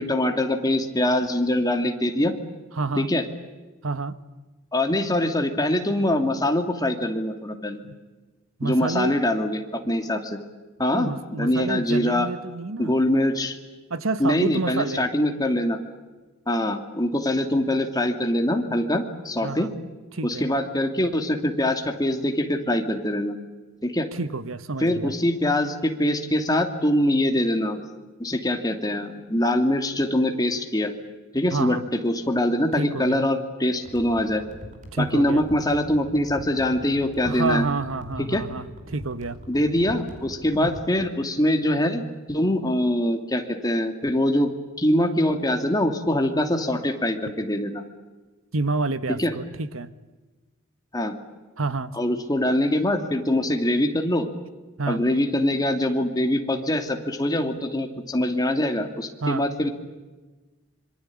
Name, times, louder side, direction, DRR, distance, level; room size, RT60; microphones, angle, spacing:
voice 1, 0.0-2.3 2.9-3.2 4.7-7.8 8.6-10.4 10.8-12.3 12.8-13.6 14.2-15.8 16.5-19.7 20.2-23.4 23.8-24.1 24.8-27.8 28.2-30.9 31.3-34.4 35.0-37.6 38.3-38.4 39.5-42.0 42.3-47.8 49.2-49.3 50.9-51.2 51.9-54.3 54.9-59.7, left 1 dB, 20° left, 4 dB, 2.7 m, -23 dB
voice 2, 2.7-3.1 3.8-4.2 8.6-9.2 10.9-12.9 13.9-15.0 19.4-19.7 20.1-20.5 24.1-25.1 31.5-31.8 32.8-33.3 34.9-35.4 37.2-39.4 40.5-40.7 48.5-49.9 51.6-51.9 54.8-55.1 59.2-59.5, right 3 dB, 75° right, 13 dB, 1.4 m, -28 dB
sound 1, 33.8-40.9, equal, 40° right, 5.3 m, -43 dB
26.0 x 24.0 x 8.7 m, 1.2 s
head